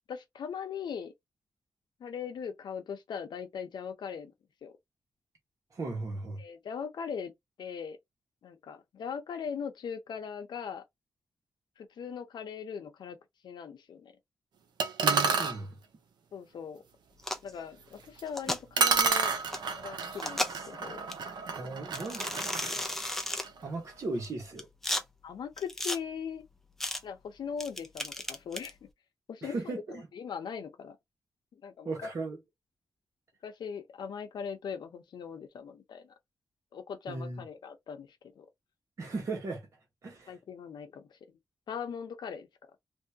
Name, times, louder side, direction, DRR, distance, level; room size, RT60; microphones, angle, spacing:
voice 1, 0.1-1.1 2.0-4.3 4.6-4.7 6.4-7.3 7.6-8.0 8.4-10.8 11.8-13.2 13.4-14.1 16.3-16.8 17.4-19.3 19.7-21.1 25.2-26.4 27.0-28.8 29.3-31.0 31.6-32.1 33.4-36.1 36.7-38.1 38.4-38.5 40.3-41.1 41.7-42.5, left 7 dB, 85° left, 0.8 m, -40 dB
voice 2, 5.7-6.4 15.0-15.7 21.5-22.5 23.6-24.7 29.4-30.1 31.8-32.4 37.1-37.4 39.0-39.7 40.0-40.4, right 3 dB, 45° right, 1.2 m, -36 dB
sound 1, 14.8-15.6 18.2-18.3 18.8-23.6, right 5 dB, 85° right, 0.7 m, -30 dB
sound 2, 17.2-17.5 18.3-18.6 19.5-19.6 20.2-20.7 21.1-21.2 21.9-23.5 24.2-25.0 25.6-26.0 26.8-27.0 27.6-28.7, left 1 dB, 5° left, 0.5 m, -34 dB
3.5 x 2.7 x 2.7 m
wide cardioid pair, 150°, 7 cm